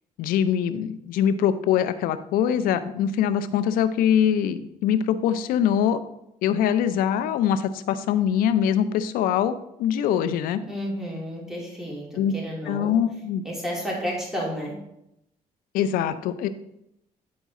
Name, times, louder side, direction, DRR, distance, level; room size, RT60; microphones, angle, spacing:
voice 1, 0.2-6.0 6.4-10.6 12.2-12.4 12.7-13.4 15.7-16.5, left 9 dB, 85° left, 12 dB, 0.5 m, -23 dB
voice 2, 10.7-13.0 13.4-14.8, equal, 5° right, -5 dB, 2.9 m, -31 dB
9.5 x 4.0 x 3.6 m, 0.82 s
cardioid pair, 85°, 14 cm